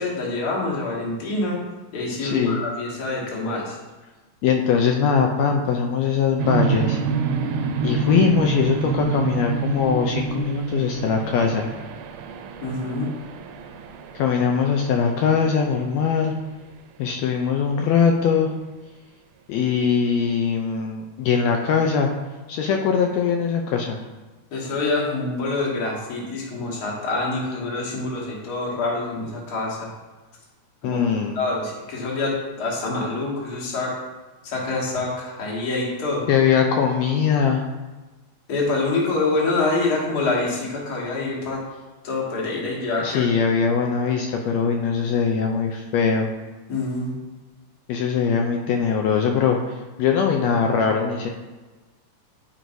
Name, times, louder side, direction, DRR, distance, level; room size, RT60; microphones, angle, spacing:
voice 1, 0.0-1.6 1.9-3.8 12.6-13.1 24.5-29.9 30.8-31.0 31.3-33.9 34.4-36.3 38.5-41.6 42.0-43.3 46.7-47.1, left 3 dB, 45° left, -4 dB, 1.3 m, -26 dB
voice 2, 2.2-2.6 4.4-7.0 7.8-11.7 14.1-16.3 17.0-18.5 19.5-22.1 22.5-24.0 30.8-31.4 36.3-37.6 43.0-46.3 47.9-51.3, left 6 dB, 90° left, 2 dB, 1.5 m, -21 dB
sound 1, 6.4-15.3, right 5 dB, 85° right, 2.1 m, -27 dB
11.0 x 4.6 x 2.6 m, 1.2 s
omnidirectional pair, 3.6 m